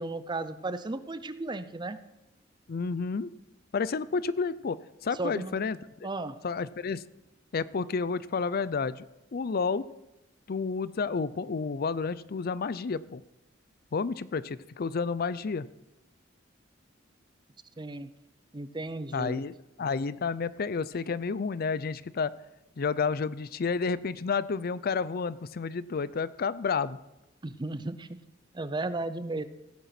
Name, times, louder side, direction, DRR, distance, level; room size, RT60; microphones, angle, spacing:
voice 1, 0.0-2.0 5.2-5.6 6.0-6.4 17.8-18.1 18.5-19.4 27.4-28.1 28.5-29.4, right 2 dB, 25° right, 12 dB, 0.6 m, -34 dB
voice 2, 2.7-3.3 3.7-5.8 6.4-7.0 7.5-9.1 9.3-9.8 10.5-13.2 13.9-15.7 19.1-22.3 22.8-27.0, left 5 dB, 50° left, 18 dB, 0.5 m, -30 dB
16.0 x 8.3 x 5.9 m, 0.92 s
head